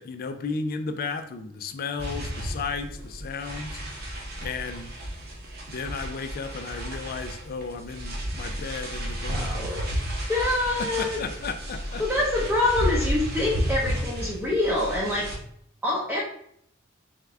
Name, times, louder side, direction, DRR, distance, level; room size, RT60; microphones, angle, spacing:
voice 1, 0.0-3.8 4.4-4.9 5.7-9.8 10.8-12.0, left 4 dB, 45° left, 8 dB, 0.4 m, -34 dB
sound 1, 2.0-15.4, equal, 50° right, 1.0 m, -32 dB
voice 2, 9.3-9.9 10.3-11.2 12.0-15.3 15.8-16.2, left 2 dB, 5° right, -5 dB, 0.7 m, -25 dB
3.5 x 3.4 x 3.4 m, 0.69 s
head